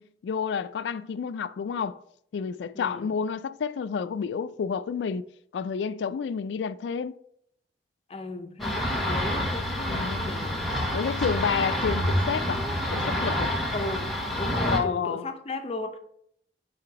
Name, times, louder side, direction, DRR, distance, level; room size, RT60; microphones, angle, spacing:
voice 1, 0.0-2.0 2.3-5.2 5.5-7.1 9.9-10.3 10.9-12.6 12.9-13.5 14.6-15.3, left 6 dB, 85° left, 0.3 m, -30 dB
voice 2, 2.7-3.1 8.1-10.6 13.7-16.0, left 2 dB, 35° left, 0.6 m, -36 dB
sound 1, 8.6-14.8, equal, ahead, 1.0 m, -28 dB
4.8 x 4.2 x 4.6 m
head